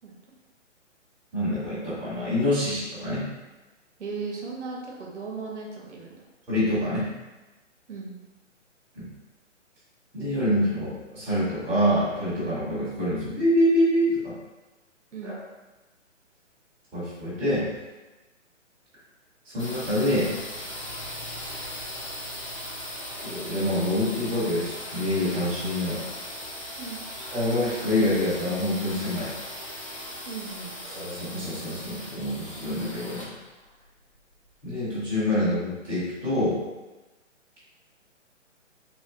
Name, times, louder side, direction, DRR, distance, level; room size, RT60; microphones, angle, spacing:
voice 1, 0.0-0.4 4.0-6.2 7.9-8.2 15.1-15.4 26.8-27.0 30.3-30.8, right 4 dB, 65° right, -2 dB, 0.8 m, -37 dB
voice 2, 1.3-3.3 6.5-7.1 8.9-9.1 10.1-14.3 15.2-15.4 16.9-17.7 19.5-20.4 23.2-26.0 27.3-29.3 30.8-33.3 34.6-36.6, left 1 dB, 5° right, -14 dB, 0.7 m, -26 dB
sound 1, 19.6-35.2, left 1 dB, 25° left, 0.4 m, -38 dB
3.0 x 2.8 x 2.6 m, 1.1 s
figure-of-eight pair, 135°, 38 cm